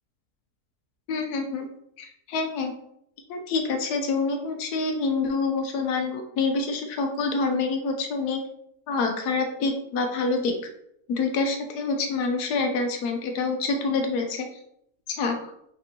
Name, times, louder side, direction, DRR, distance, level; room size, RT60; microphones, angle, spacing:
voice 1, 1.1-1.7 2.0-2.7 3.3-8.4 8.9-10.5 11.1-14.5 15.1-15.4, left 4 dB, 85° left, 5 dB, 1.2 m, -26 dB
5.2 x 3.5 x 2.8 m, 0.76 s
omnidirectional pair, 1.6 m